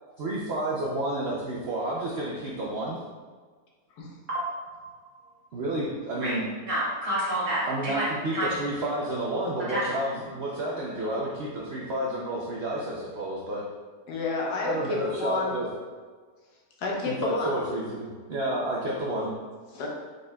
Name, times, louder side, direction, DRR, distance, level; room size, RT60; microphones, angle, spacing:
voice 1, 0.2-3.0 5.5-6.4 7.7-13.6 14.6-15.7 17.1-19.3, right 1 dB, 90° right, -4 dB, 0.5 m, -30 dB
voice 2, 4.3-4.7 6.2-6.3 6.7-8.0 8.3-8.5 9.7-9.8, right 1 dB, 45° right, -8 dB, 1.7 m, -29 dB
voice 3, 14.1-15.5 16.8-17.5 19.7-19.9, left 4 dB, 70° left, -2 dB, 1.4 m, -30 dB
4.8 x 4.3 x 2.2 m, 1.5 s
omnidirectional pair, 1.9 m